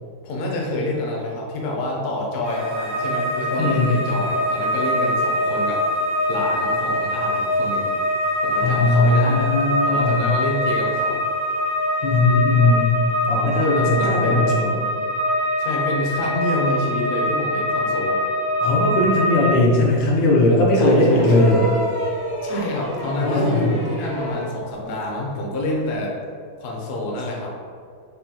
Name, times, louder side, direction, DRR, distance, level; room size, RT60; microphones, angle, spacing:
voice 1, 0.2-5.9 6.3-7.9 8.4-9.5 9.8-11.2 13.3-14.6 15.6-18.2 20.7-21.5 22.4-26.2 26.6-27.6, left 1 dB, 65° left, -2 dB, 0.8 m, -27 dB
sound 1, 2.4-19.6, left 1 dB, 85° right, 1.5 m, -23 dB
voice 2, 3.6-3.9 8.6-10.3 12.0-12.9 13.3-14.8 18.6-21.8 23.2-23.7, left 2 dB, 90° left, -3 dB, 1.6 m, -18 dB
sound 2, 21.1-24.6 25.9-26.0, equal, 45° right, 0.5 m, -28 dB
5.4 x 2.2 x 2.8 m, 2.2 s
omnidirectional pair, 2.1 m